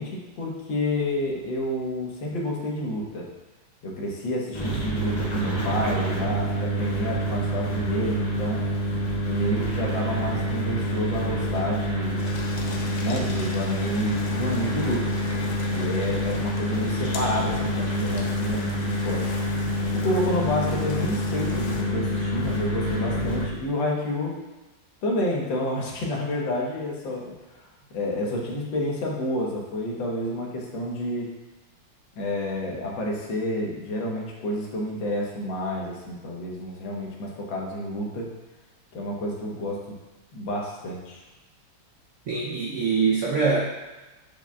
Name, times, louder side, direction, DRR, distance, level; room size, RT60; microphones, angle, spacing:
voice 1, 0.0-3.3 3.8-8.6 9.3-12.2 13.0-15.1 15.7-19.3 19.9-24.4 25.0-27.3 27.9-31.3 32.2-38.3 38.9-40.0 40.3-41.2, left 1 dB, 85° left, -2 dB, 1.8 m, -29 dB
sound 1, 4.5-23.5, equal, 25° left, 1.2 m, -27 dB
sound 2, 12.2-21.8, left 3 dB, 60° left, 0.8 m, -39 dB
voice 2, 42.3-43.6, right 5 dB, 75° right, -2 dB, 0.7 m, -23 dB
8.6 x 4.8 x 2.3 m, 1.1 s
omnidirectional pair, 2.0 m